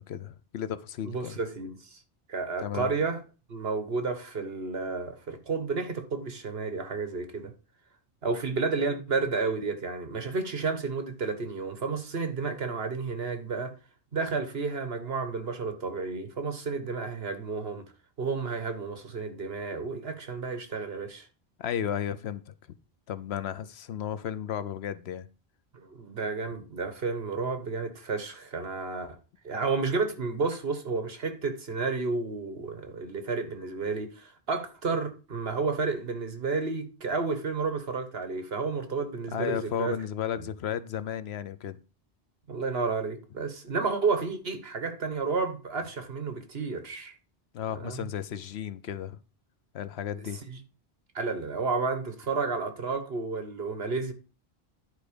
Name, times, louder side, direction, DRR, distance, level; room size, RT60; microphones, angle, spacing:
voice 1, 0.0-1.3 2.6-2.9 21.6-22.5 23.1-25.3 39.3-41.8 47.5-49.2 49.7-50.4, left 9 dB, 75° left, 0.9 m, -34 dB
voice 2, 1.0-2.0 2.3-3.2 3.5-7.5 8.2-13.7 14.1-17.8 18.2-21.3 25.7-29.2 29.4-39.9 42.5-47.1 47.7-48.1 50.5-50.6 51.1-54.1, right 4 dB, 65° right, 1.6 m, -31 dB
10.5 x 4.8 x 5.1 m
omnidirectional pair, 1.1 m